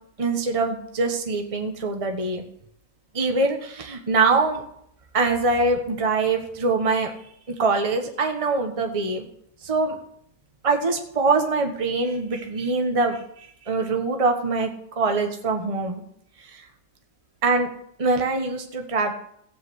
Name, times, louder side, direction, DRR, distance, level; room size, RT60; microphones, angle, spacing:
voice 1, 0.2-2.4 3.1-4.6 5.1-7.1 7.5-9.3 9.6-10.0 10.6-16.0 16.4-16.6 17.4-17.7 18.0-19.1, right 3 dB, 20° right, 3 dB, 1.3 m, -23 dB
15.5 x 5.5 x 8.0 m, 0.70 s
omnidirectional pair, 1.7 m